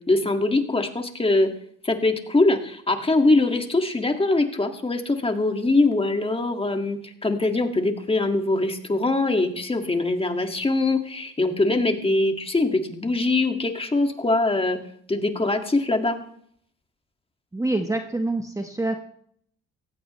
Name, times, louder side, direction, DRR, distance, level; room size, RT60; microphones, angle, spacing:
voice 1, 0.1-1.5 1.8-14.8 15.1-16.2, left 2 dB, 20° left, 5 dB, 2.0 m, -22 dB
voice 2, 17.5-19.0, right 2 dB, 10° right, 5 dB, 1.0 m, -26 dB
17.0 x 15.0 x 3.2 m, 0.64 s
cardioid pair, 90°, 30 cm